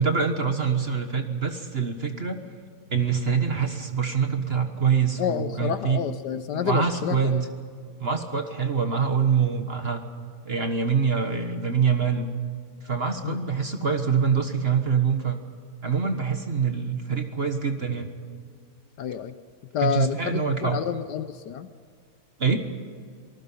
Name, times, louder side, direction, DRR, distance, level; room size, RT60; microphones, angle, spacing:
voice 1, 0.0-2.4 2.9-6.0 6.5-7.5 8.0-10.0 10.4-12.3 12.8-15.4 15.8-18.1 19.8-20.8 22.4-22.6, right 6 dB, 35° right, 6 dB, 1.4 m, -25 dB
voice 2, 5.2-7.4 13.2-13.4 19.0-19.3 19.7-21.7, left 9 dB, 65° left, 11 dB, 1.2 m, -29 dB
27.0 x 19.0 x 5.7 m, 2.1 s
omnidirectional pair, 2.1 m